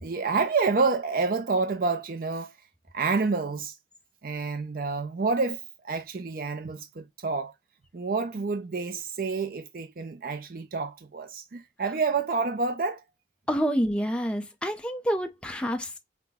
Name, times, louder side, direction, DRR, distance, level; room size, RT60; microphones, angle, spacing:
voice 1, 0.0-2.6 2.9-3.8 4.2-7.5 7.9-13.0, right 4 dB, 50° right, 0.5 m, -28 dB
voice 2, 13.5-16.0, equal, 5° left, 0.6 m, -28 dB
5.8 x 2.2 x 3.5 m
head